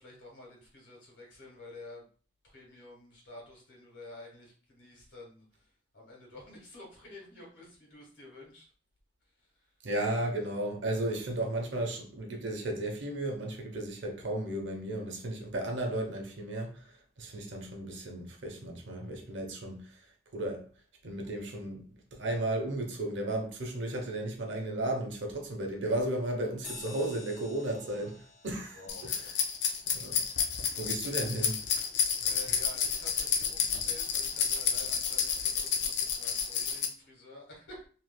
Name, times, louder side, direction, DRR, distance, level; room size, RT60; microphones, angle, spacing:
voice 1, 0.0-2.0 2.5-5.4 5.9-8.6 27.8-28.1 28.7-29.1 30.7-31.2 32.2-37.8, left 2 dB, 90° left, 1.6 m, -50 dB
voice 2, 9.8-16.7 17.2-19.8 20.3-20.6 21.0-21.8 22.1-28.2 28.4-29.3 29.9-30.2 30.8-31.5, right 1 dB, 85° right, 0.8 m, -34 dB
sound 1, 26.6-31.5, left 3 dB, 45° left, 1.1 m, -51 dB
sound 2, 28.9-36.9, left 7 dB, 75° left, 0.5 m, -30 dB
3.1 x 3.0 x 2.2 m
head